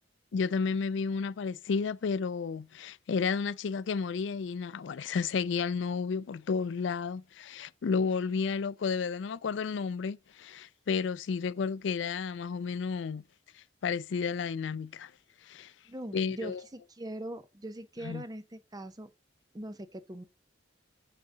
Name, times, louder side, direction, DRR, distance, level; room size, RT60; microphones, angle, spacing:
voice 1, 0.3-13.2 13.8-15.1 15.4-15.7 16.1-16.6 18.0-18.2, left 5 dB, 70° left, 0.4 m, -32 dB
voice 2, 15.9-19.1 19.5-20.2, right 1 dB, 20° right, 0.6 m, -41 dB
8.0 x 3.9 x 4.8 m
head